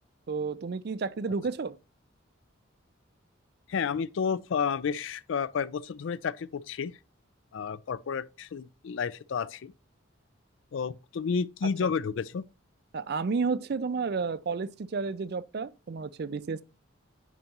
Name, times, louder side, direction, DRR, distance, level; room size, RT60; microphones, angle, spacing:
voice 1, 0.3-1.8 12.9-16.6, right 4 dB, 50° right, 0.4 m, -31 dB
voice 2, 3.7-7.0 7.5-9.7 10.7-12.4, left 6 dB, 65° left, 0.4 m, -31 dB
9.1 x 5.2 x 2.9 m
head